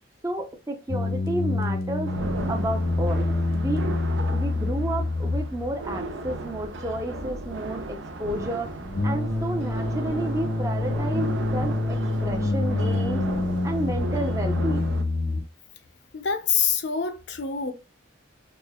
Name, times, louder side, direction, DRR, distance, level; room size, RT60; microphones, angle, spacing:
voice 1, 0.2-2.1 2.5-4.0 4.3-8.7 9.0-13.3 13.6-14.9, right 1 dB, 15° right, 0.6 m, -31 dB
sound 1, 0.9-15.4, left 2 dB, 85° left, 1.1 m, -27 dB
sound 2, 2.1-15.0, right 2 dB, 70° right, 0.6 m, -36 dB
voice 2, 16.1-17.7, left 7 dB, 60° left, 0.6 m, -25 dB
4.2 x 3.2 x 2.3 m
head